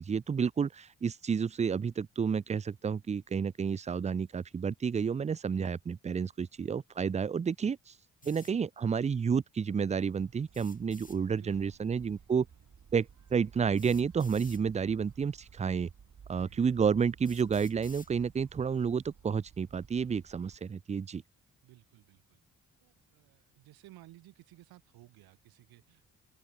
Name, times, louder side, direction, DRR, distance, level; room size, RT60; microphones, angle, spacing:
voice 1, 0.0-7.9 8.3-12.5 12.9-15.9 16.3-21.2, right 6 dB, 20° right, 0.4 m, -30 dB
sound 1, 8.2-8.5 10.5-11.2 12.6-12.7 13.8-14.6 15.6-15.7 16.4-16.5 17.2-18.1, left 3 dB, 20° left, 2.0 m, -54 dB
sound 2, 9.9-20.6, right 7 dB, 50° right, 3.4 m, -56 dB
voice 2, 11.4-11.8 16.3-16.7 21.6-22.4 22.8-26.1, right 16 dB, 75° right, 3.5 m, -57 dB
open air
hypercardioid pair, 40°, 37 cm